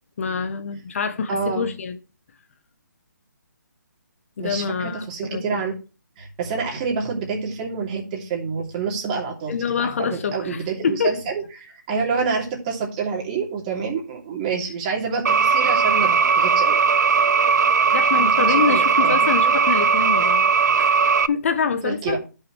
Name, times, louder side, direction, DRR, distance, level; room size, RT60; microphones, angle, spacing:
voice 1, 0.2-2.0 4.4-5.6 9.5-11.1 17.9-20.5 20.8-20.9 21.3-22.2, left 6 dB, 45° left, 0.8 m, -25 dB
voice 2, 1.3-1.7 4.4-5.7 6.2-16.8 18.1-19.5 21.8-22.2, right 5 dB, 25° right, 2.8 m, -28 dB
sound 1, 15.3-21.3, right 5 dB, 65° right, 0.6 m, -18 dB
12.5 x 5.6 x 3.1 m
figure-of-eight pair, 155°, 10 cm